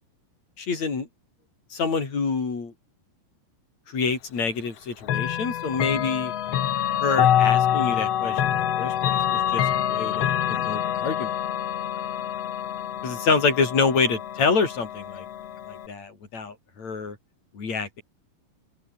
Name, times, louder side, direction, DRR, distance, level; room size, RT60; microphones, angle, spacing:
voice 1, 0.6-1.1 1.7-2.7 3.9-6.3 7.0-11.3 13.0-15.3 15.7-17.2 17.5-18.0, left 4 dB, 45° left, 5.8 m, -27 dB
Chime / Clock, 5.0-15.9, left 10 dB, 65° left, 1.6 m, -26 dB
open air
omnidirectional pair, 4.7 m